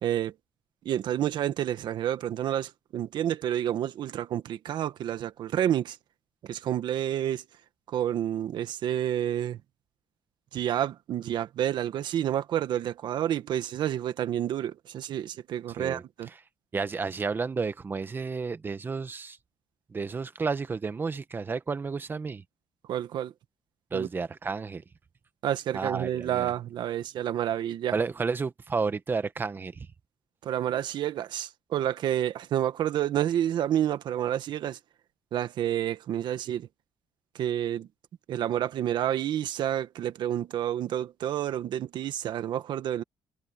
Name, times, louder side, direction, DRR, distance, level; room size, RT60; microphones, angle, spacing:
voice 1, 0.0-0.3 0.8-6.0 6.4-7.4 7.9-9.6 10.5-16.3 22.9-23.3 23.9-24.1 25.4-27.9 30.4-34.8 35.3-36.7 37.3-37.9 38.3-43.0, right 11 dB, 60° right, 1.4 m, -29 dB
voice 2, 15.7-16.3 16.7-19.4 19.9-22.4 23.9-24.8 25.7-26.5 27.9-29.9, right 4 dB, 25° right, 1.2 m, -31 dB
cardioid pair, 135°, 9 cm